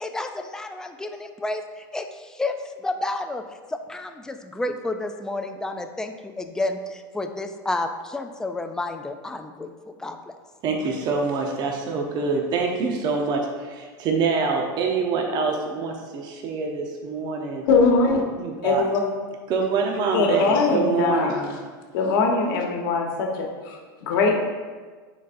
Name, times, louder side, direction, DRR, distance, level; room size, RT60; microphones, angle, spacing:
voice 1, 0.0-3.4 3.7-10.4, left 2 dB, 5° left, 6 dB, 0.4 m, -31 dB
voice 2, 10.6-17.6 18.2-18.9 19.5-21.4, right 4 dB, 40° right, 1 dB, 0.9 m, -25 dB
voice 3, 17.7-18.2 18.6-19.0 20.1-21.5 21.9-24.4, left 4 dB, 75° left, 1 dB, 1.2 m, -21 dB
9.3 x 4.0 x 2.6 m, 1.5 s
supercardioid pair, 130°, 11 cm